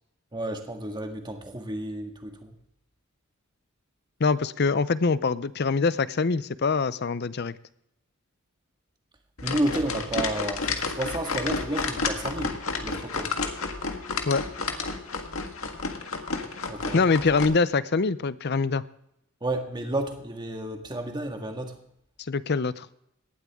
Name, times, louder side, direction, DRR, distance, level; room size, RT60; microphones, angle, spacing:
voice 1, 0.3-2.5 9.4-13.4 16.7-17.0 19.4-21.8, right 1 dB, 20° right, 4 dB, 1.8 m, -31 dB
voice 2, 4.2-7.6 14.3-14.5 16.9-18.8 22.2-22.9, left 4 dB, 50° left, 16 dB, 0.6 m, -24 dB
sound 1, 9.4-17.5, left 4 dB, 85° left, 1.7 m, -31 dB
18.5 x 12.0 x 3.6 m, 0.76 s
head